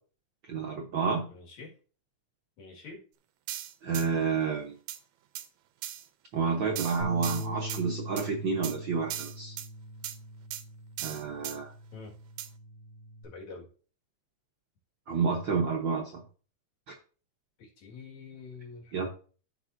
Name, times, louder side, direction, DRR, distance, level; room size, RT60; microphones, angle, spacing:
voice 1, 0.5-1.2 3.8-4.7 6.3-9.5 11.0-11.7 15.1-16.2 18.9-19.1, right 5 dB, 60° right, -1 dB, 1.3 m, -29 dB
voice 2, 1.3-1.7 2.6-3.0 11.9-12.1 13.2-13.7 17.6-19.0, left 4 dB, 70° left, -1 dB, 3.3 m, -46 dB
sound 1, 3.5-4.1 4.9-5.0 5.3-5.5 5.8-6.0 6.8-7.8 8.2-8.3 8.6-8.8 9.1-9.7 10.0-10.2 10.5-10.6 11.0-11.6 12.4-12.5, right 12 dB, 80° right, 1.8 m, -37 dB
Bass guitar, 7.0-13.2, right 1 dB, 35° left, 2.6 m, -41 dB
13.5 x 5.3 x 2.7 m, 0.39 s
omnidirectional pair, 3.3 m